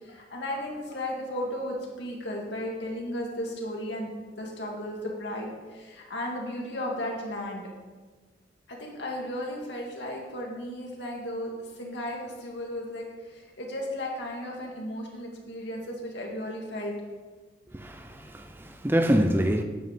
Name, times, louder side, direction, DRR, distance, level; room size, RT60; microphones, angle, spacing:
voice 1, 0.0-4.1 4.4-7.7 8.7-16.9, left 1 dB, 70° left, 2.3 m, -35 dB
voice 2, 17.7-19.6, equal, 10° right, 0.5 m, -25 dB
9.4 x 5.4 x 7.6 m
head